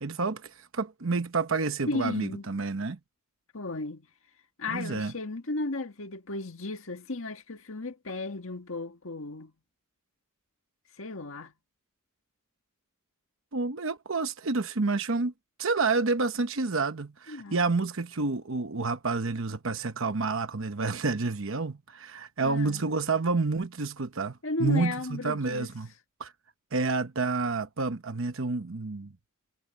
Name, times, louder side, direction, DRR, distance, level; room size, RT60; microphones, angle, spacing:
voice 1, 0.0-3.0 4.7-5.1 13.5-15.3 15.6-25.9 26.2-26.3 26.7-29.1, right 3 dB, 70° right, 1.0 m, -29 dB
voice 2, 1.9-2.4 3.5-4.1 4.6-9.5 11.0-11.5 17.3-17.6 22.4-22.8 24.4-25.7, left 2 dB, 70° left, 1.9 m, -34 dB
head